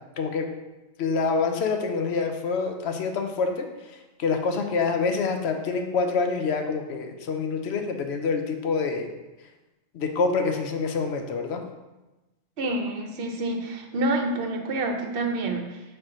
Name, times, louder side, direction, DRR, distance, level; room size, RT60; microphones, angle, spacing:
voice 1, 0.2-0.5 1.0-9.1 9.4-9.5 9.9-11.6, left 4 dB, 70° left, 5 dB, 0.9 m, -26 dB
voice 2, 12.6-15.8, right 2 dB, 60° right, 4 dB, 0.9 m, -28 dB
5.8 x 4.4 x 3.8 m, 1.1 s
omnidirectional pair, 1.2 m